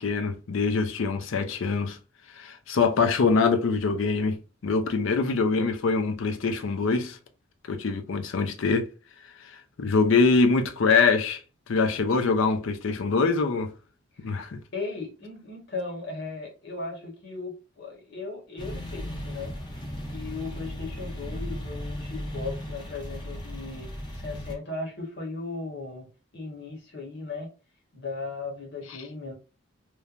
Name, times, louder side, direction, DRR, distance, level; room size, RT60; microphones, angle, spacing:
voice 1, 0.0-2.0 2.4-7.2 7.7-8.9 9.8-11.4 11.7-13.7 14.2-14.6, left 4 dB, 70° left, 0.4 m, -24 dB
voice 2, 14.7-19.8 20.1-26.1 26.3-27.5 27.9-29.3, left 3 dB, 55° left, 1.1 m, -37 dB
sound 1, 18.6-24.5, equal, 20° left, 0.6 m, -36 dB
3.1 x 2.1 x 2.4 m
head